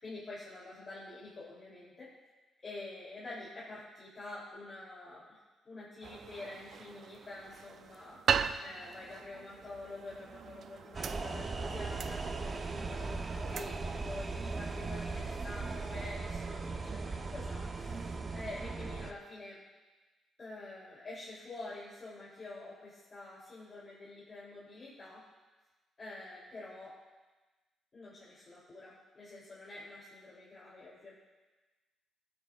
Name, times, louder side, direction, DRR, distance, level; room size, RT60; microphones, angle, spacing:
voice 1, 0.0-2.1 2.6-19.6 20.4-25.2 26.0-26.9 27.9-31.1, left 2 dB, 35° left, -8 dB, 3.3 m, -47 dB
sound 1, 6.0-16.2, right 7 dB, 60° right, 0.4 m, -40 dB
sound 2, 10.9-19.1, right 3 dB, 35° right, 1.0 m, -38 dB
18.0 x 9.7 x 2.5 m, 1.2 s
cardioid pair, 90°, 0 cm